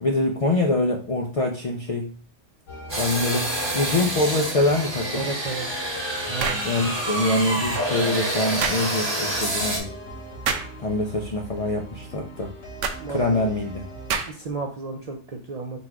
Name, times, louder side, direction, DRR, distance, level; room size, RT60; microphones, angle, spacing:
voice 1, 0.0-2.1 3.0-5.3 6.6-9.9 10.8-12.5 13.1-13.9, left 2 dB, 55° left, 1 dB, 0.4 m, -24 dB
sound 1, 2.7-14.2, equal, 90° left, 1.6 m, -39 dB
sound 2, 2.9-9.8, right 1 dB, 25° right, 1.0 m, -28 dB
voice 2, 5.1-5.7 6.3-6.6 13.0-13.4 14.2-15.8, right 3 dB, 55° right, 2 dB, 0.4 m, -33 dB
sound 3, 6.4-6.7 8.6-8.8 10.4-10.7 12.8-13.0 14.1-14.5, right 6 dB, 85° right, 1.0 m, -27 dB
4.0 x 2.4 x 4.5 m, 0.40 s
omnidirectional pair, 1.2 m